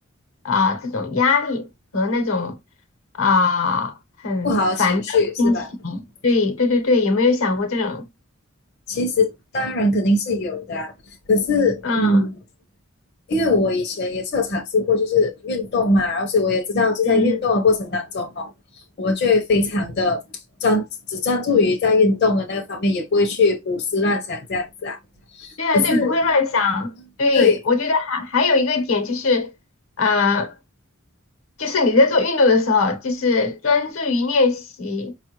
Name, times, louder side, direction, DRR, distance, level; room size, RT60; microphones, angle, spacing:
voice 1, 0.4-1.7 1.9-2.6 3.2-4.0 4.2-4.5 4.8-8.0 11.8-12.2 17.0-17.4 25.6-26.9 27.2-29.5 30.0-30.5 31.6-35.1, left 3 dB, 80° left, 1.0 m, -20 dB
voice 2, 4.4-5.7 8.9-10.9 11.3-12.3 13.3-18.5 19.0-20.2 20.6-25.0 25.4-26.2 27.3-27.6, left 3 dB, 50° left, 0.6 m, -21 dB
5.0 x 2.4 x 2.9 m
head